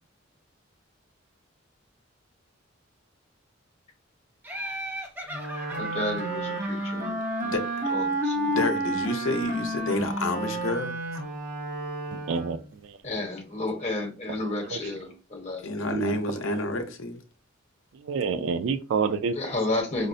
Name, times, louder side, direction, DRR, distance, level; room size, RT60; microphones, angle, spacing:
Laughter, 4.4-8.1, right 1 dB, 10° right, 0.6 m, -39 dB
Wind instrument woodwind instrument, 5.3-12.7, right 1 dB, 45° right, 1.0 m, -30 dB
voice 1, 5.7-7.2 7.9-8.5 13.0-15.6 19.3-20.1, left 2 dB, 35° left, 1.1 m, -31 dB
voice 2, 7.4-7.9 8.5-11.0 15.6-17.2, left 2 dB, 75° left, 0.7 m, -29 dB
voice 3, 12.1-13.0 14.3-15.1 15.9-16.6 17.9-19.8, right 5 dB, 70° right, 0.3 m, -30 dB
5.0 x 2.0 x 2.6 m
head